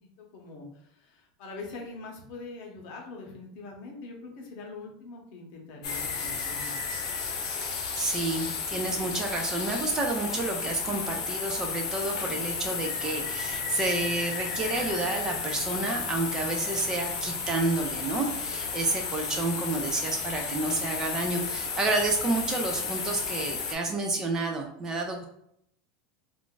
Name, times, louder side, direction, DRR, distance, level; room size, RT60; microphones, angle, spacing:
voice 1, 0.0-6.8 19.2-19.5, left 3 dB, 50° left, 0 dB, 0.8 m, -43 dB
sound 1, 5.8-23.8, left 5 dB, 85° left, 0.7 m, -33 dB
voice 2, 7.5-25.2, right 2 dB, 20° right, 2 dB, 0.3 m, -30 dB
2.4 x 2.3 x 3.6 m, 0.73 s
supercardioid pair, 165°, 3 cm